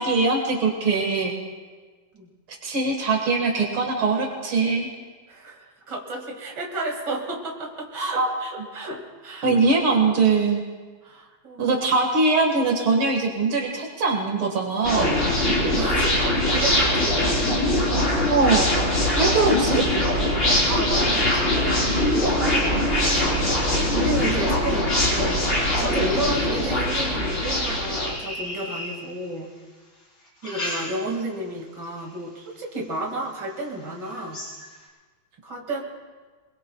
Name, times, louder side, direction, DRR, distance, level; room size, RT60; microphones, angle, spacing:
voice 1, 0.0-1.3 2.6-4.9 8.1-8.3 9.4-10.6 11.6-15.2 18.3-18.7 19.1-19.9, right 3 dB, 85° right, 1 dB, 2.6 m, -22 dB
voice 2, 5.3-9.5 11.0-11.7 15.6-16.2 16.5-17.9 18.4-18.6 19.0-19.2 20.3-25.5 25.8-29.5 30.4-34.4 35.4-35.8, right 1 dB, 55° right, 0 dB, 2.8 m, -32 dB
sound 1, 14.8-28.1, left 1 dB, 35° left, 4.1 m, -22 dB
sound 2, 24.6-29.6 30.2-31.4 31.8-32.2 32.8-32.9 33.3-33.4 33.8-34.8, left 1 dB, 55° left, 5.3 m, -37 dB
25.5 x 22.0 x 2.3 m, 1.4 s
omnidirectional pair, 2.2 m